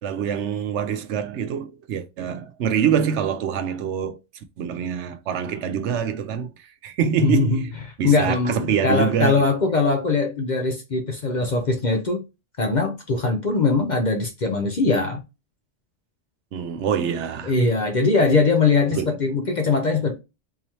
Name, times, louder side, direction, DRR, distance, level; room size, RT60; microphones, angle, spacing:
voice 1, 0.0-4.2 4.6-7.6 8.0-9.4 16.5-17.5 18.9-19.1, right 8 dB, 70° right, 0.8 m, -25 dB
voice 2, 7.2-12.2 12.6-15.2 17.4-20.2, left 3 dB, 45° left, 0.6 m, -21 dB
3.8 x 3.0 x 2.7 m
omnidirectional pair, 1.3 m